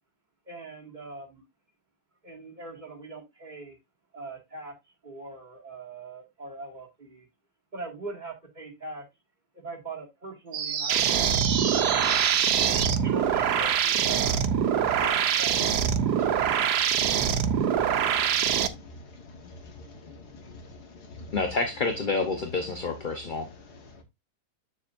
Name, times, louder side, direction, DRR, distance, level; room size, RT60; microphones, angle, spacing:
voice 1, 0.5-1.4 2.2-3.8 4.1-4.7 5.0-7.3 7.7-9.0 9.5-12.0 13.0-14.4 15.0-15.7, right 2 dB, 30° right, 2.2 m, -41 dB
sound 1, 10.5-13.0, right 8 dB, 65° right, 1.3 m, -28 dB
sound 2, 10.9-18.7, right 8 dB, 85° right, 1.3 m, -24 dB
voice 2, 12.5-13.0 14.9-15.0 16.1-16.9 17.4-21.4 23.6-24.0, left 2 dB, 75° left, 2.1 m, -48 dB
voice 3, 21.3-23.5, left 3 dB, 35° left, 1.0 m, -28 dB
7.9 x 7.2 x 2.6 m
omnidirectional pair, 1.7 m